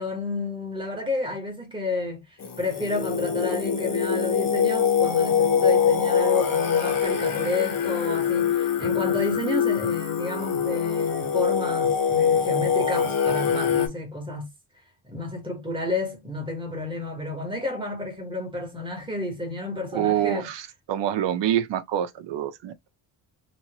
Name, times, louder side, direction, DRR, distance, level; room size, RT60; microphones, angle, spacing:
voice 1, 0.0-2.2 2.6-14.5 15.0-20.5, left 2 dB, 10° right, 1.5 m, -31 dB
Singing, 2.4-13.9, left 7 dB, 45° left, 0.9 m, -23 dB
voice 2, 19.9-22.9, right 11 dB, 70° right, 0.7 m, -26 dB
3.1 x 2.9 x 3.0 m
cardioid pair, 160°, 45 cm